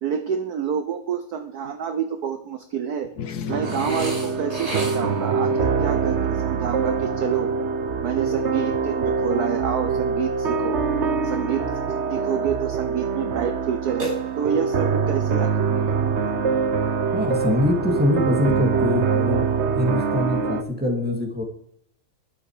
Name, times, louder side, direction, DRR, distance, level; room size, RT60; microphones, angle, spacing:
voice 1, 0.0-3.1 3.5-7.5 8.0-10.8 11.2-11.7 12.1-14.1 14.4-15.8, right 7 dB, 55° right, 8 dB, 1.3 m, -28 dB
sound 1, 3.0-7.8, left 7 dB, 55° left, 1.3 m, -39 dB
sound 2, 3.5-20.6, right 5 dB, 80° right, 0.6 m, -24 dB
Burping eructation, 3.6-5.3 14.0-14.8, right 1 dB, 40° right, 4.6 m, -32 dB
voice 2, 17.1-19.4 19.8-21.4, left 1 dB, 5° right, 2 dB, 2.4 m, -23 dB
21.5 x 7.2 x 5.0 m, 0.70 s
omnidirectional pair, 2.4 m